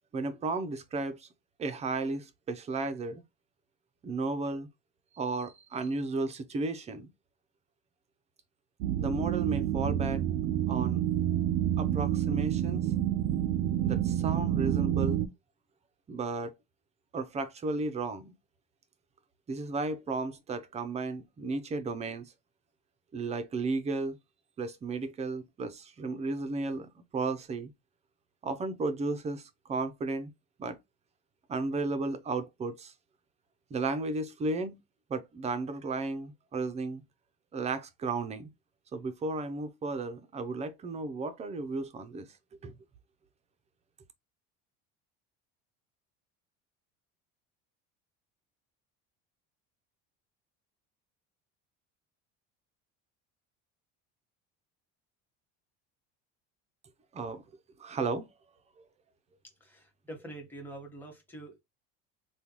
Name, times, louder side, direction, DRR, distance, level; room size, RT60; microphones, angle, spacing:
voice 1, 0.1-1.3 1.6-3.2 4.0-4.7 5.1-7.1 9.0-10.2 10.7-11.0 11.8-12.9 13.8-15.2 16.1-16.5 17.1-18.3 19.5-22.3 23.1-24.2 24.6-27.7 28.4-30.3 30.6-30.8 31.5-32.9 33.7-34.8 35.1-37.0 37.5-38.5 38.9-42.3 42.6-42.7 57.1-57.4 57.8-58.3, right 3 dB, 20° right, 0.5 m, -34 dB
sound 1, 8.8-15.3, right 11 dB, 70° right, 0.5 m, -28 dB
voice 2, 59.6-61.6, right 1 dB, 5° left, 1.2 m, -45 dB
3.6 x 2.3 x 2.9 m
cardioid pair, 135°, 31 cm